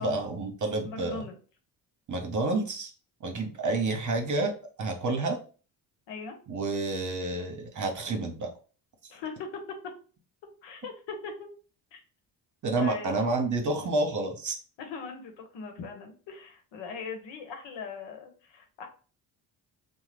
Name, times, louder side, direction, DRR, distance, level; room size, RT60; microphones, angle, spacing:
voice 1, 0.0-1.2 2.1-2.9 3.2-4.5 4.8-5.4 6.5-8.5 12.6-14.6, right 2 dB, 40° right, 4 dB, 0.9 m, -29 dB
voice 2, 0.8-1.3 6.1-6.4 9.1-9.5 10.6-11.5 11.9-12.0 12.8-13.1 14.8-18.9, left 5 dB, 80° left, 5 dB, 0.9 m, -39 dB
2.9 x 2.2 x 3.3 m, 0.37 s
supercardioid pair, 65°, 44 cm